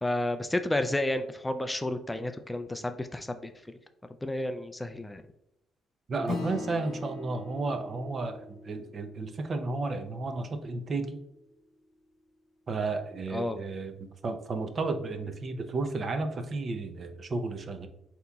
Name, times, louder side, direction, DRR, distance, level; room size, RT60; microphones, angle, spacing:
voice 1, 0.0-3.5 4.2-5.2 13.3-13.6, left 1 dB, 10° left, 9 dB, 0.3 m, -31 dB
voice 2, 6.1-8.4 8.6-11.2 12.7-13.9 14.2-17.9, right 3 dB, 45° right, 7 dB, 0.6 m, -32 dB
Acoustic guitar / Strum, 6.3-11.1, left 3 dB, 75° left, 0.7 m, -41 dB
8.0 x 2.9 x 2.3 m, 0.84 s
cardioid pair, 90°, 0 cm